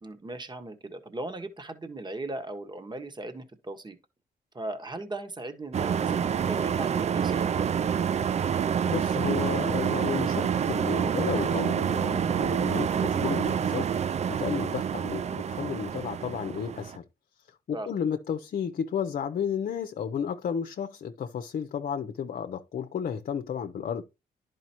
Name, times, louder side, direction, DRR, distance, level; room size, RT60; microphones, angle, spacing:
voice 1, 0.0-4.0 4.5-7.7 17.7-17.9, right 2 dB, 25° right, 1.5 m, -37 dB
sound 1, 5.7-17.0, right 8 dB, 45° right, 0.4 m, -27 dB
voice 2, 8.9-17.0 17.4-24.0, left 7 dB, 60° left, 0.7 m, -33 dB
11.0 x 5.0 x 3.0 m
cardioid pair, 70°, 16 cm